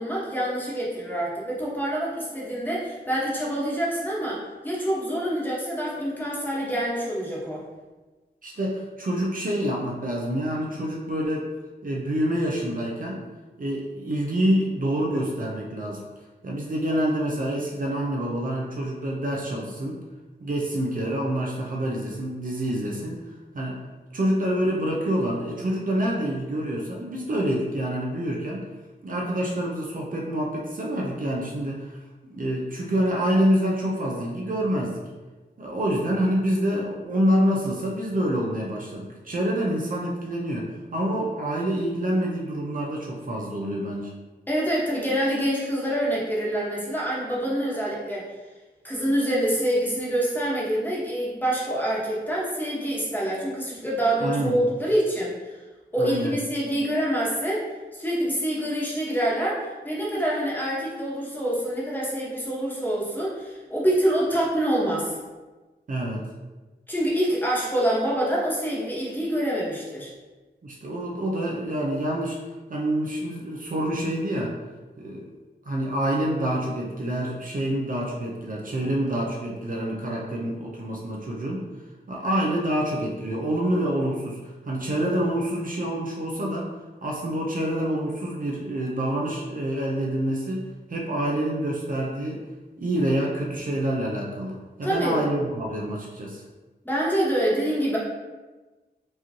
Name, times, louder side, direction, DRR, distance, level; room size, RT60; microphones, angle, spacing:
voice 1, 0.0-7.6 44.5-48.2 48.8-55.3 55.9-57.6 57.9-65.1 66.9-70.1 92.8-92.9 94.8-95.2 96.8-98.0, right 1 dB, 10° left, -5 dB, 1.2 m, -26 dB
voice 2, 8.4-11.5 11.8-13.2 13.6-16.0 16.4-20.0 20.4-23.2 23.5-23.8 24.1-28.7 29.0-31.9 32.2-35.0 35.6-44.1 54.2-54.6 56.0-56.4 65.9-66.2 70.6-72.4 72.7-74.5 75.0-75.3 75.7-81.7 82.1-86.7 87.0-90.6 90.9-92.4 92.8-96.4, right 1 dB, 50° right, -2 dB, 0.7 m, -27 dB
4.7 x 3.1 x 2.8 m, 1.2 s
wide cardioid pair, 90°, 18 cm